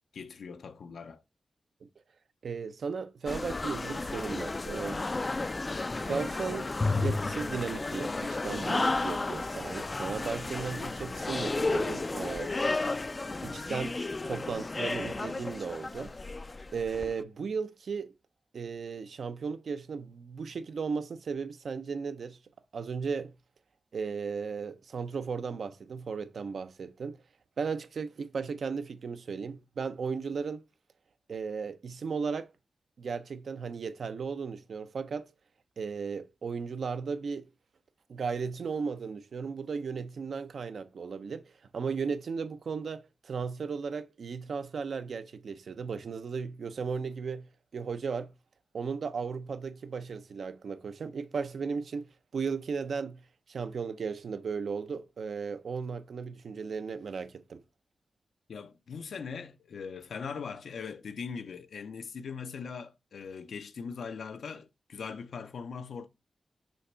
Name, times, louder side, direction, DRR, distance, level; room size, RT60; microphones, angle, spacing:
voice 1, 0.1-1.2 58.5-66.1, left 6 dB, 85° left, 0.6 m, -40 dB
voice 2, 2.4-5.0 6.1-12.5 13.4-16.2 16.7-18.1 18.5-22.4 22.7-23.3 23.9-27.2 27.6-30.6 31.3-32.5 33.0-35.3 35.8-37.5 38.1-47.5 47.7-48.3 48.7-53.2 53.5-57.6, right 5 dB, 75° right, 0.6 m, -35 dB
sound 1, 3.3-17.1, left 3 dB, 30° left, 0.3 m, -32 dB
6.4 x 3.4 x 5.4 m
wide cardioid pair, 95°, 0 cm